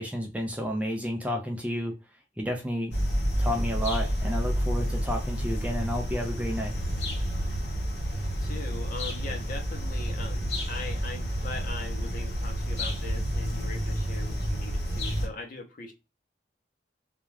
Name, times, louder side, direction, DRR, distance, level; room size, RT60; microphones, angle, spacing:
voice 1, 0.0-1.9 2.4-2.9 3.4-6.7, equal, 10° right, 2 dB, 0.4 m, -31 dB
sound 1, 2.9-15.3, equal, 65° left, 1.0 m, -30 dB
voice 2, 8.4-15.9, left 3 dB, 50° left, 3 dB, 0.6 m, -40 dB
2.3 x 2.2 x 3.1 m, 0.27 s
head